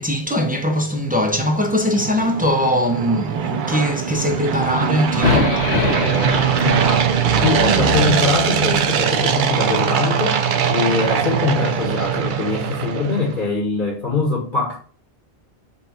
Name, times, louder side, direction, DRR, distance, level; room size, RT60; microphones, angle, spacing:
voice 1, 0.0-5.7, left 1 dB, 15° right, 0.3 m, -21 dB
sound 1, 1.1-13.4, right 7 dB, 60° right, 0.6 m, -21 dB
sound 2, 5.2-9.4, left 4 dB, 80° left, 1.1 m, -25 dB
voice 2, 6.6-7.2 7.4-10.4 10.7-14.8, left 4 dB, 50° left, 1.2 m, -23 dB
5.4 x 2.3 x 4.0 m
omnidirectional pair, 1.1 m